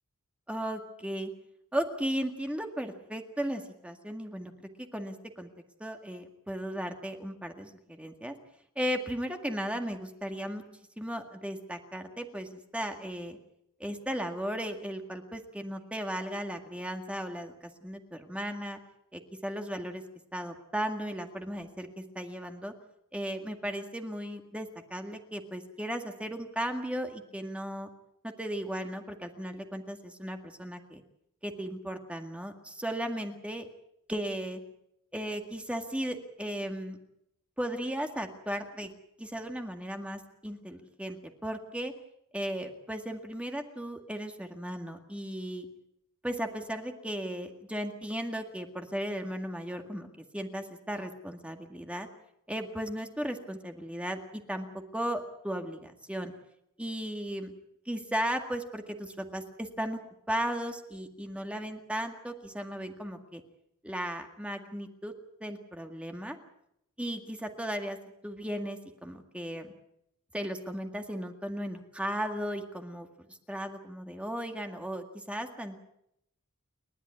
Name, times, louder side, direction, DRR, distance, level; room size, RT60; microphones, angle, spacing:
voice 1, 0.5-1.3 1.7-5.5 5.8-8.3 8.8-10.6 11.0-13.4 13.8-18.8 19.1-20.0 20.3-22.7 23.1-27.9 28.2-31.0 31.4-33.7 34.1-34.6 35.1-37.0 37.6-38.9 39.2-41.9 42.3-45.7 46.2-52.1 52.5-56.3 56.8-57.5 57.9-63.4 63.8-65.1 65.4-66.4 67.0-68.0 68.2-69.7 70.3-75.8, equal, 5° right, 4 dB, 1.9 m, -36 dB
30.0 x 12.0 x 9.5 m, 0.78 s
head